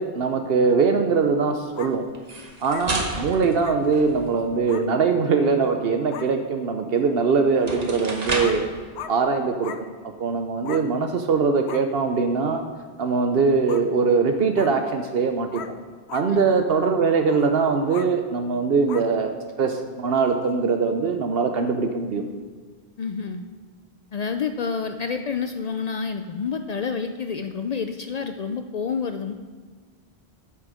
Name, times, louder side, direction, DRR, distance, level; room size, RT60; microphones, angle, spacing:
voice 1, 0.0-2.1 2.6-8.7 9.1-9.7 10.2-12.6 13.0-15.7 16.1-19.3 19.6-22.2, right 4 dB, 65° right, 6 dB, 0.9 m, -22 dB
sound 1, 1.7-1.9 2.7-2.9 3.6-3.8 4.7-4.9 5.7-5.8 6.1-6.3 8.0-8.1 8.4-8.6 9.0-9.1 9.6-9.8 10.6-10.9 11.7-11.8 13.7-13.9 14.6-14.7 15.5-15.8 16.1-16.3 17.3-17.4 17.9-18.1 18.9-19.1 20.4-20.5, left 8 dB, 85° left, 0.9 m, -37 dB
sound 2, 2.1-4.5 7.0-7.1 7.5-8.7, right 2 dB, 40° right, 1.2 m, -31 dB
voice 2, 16.3-16.6 23.0-23.4 24.1-29.3, left 5 dB, 55° left, 7 dB, 0.5 m, -29 dB
9.2 x 6.3 x 6.2 m, 1.5 s
omnidirectional pair, 1.1 m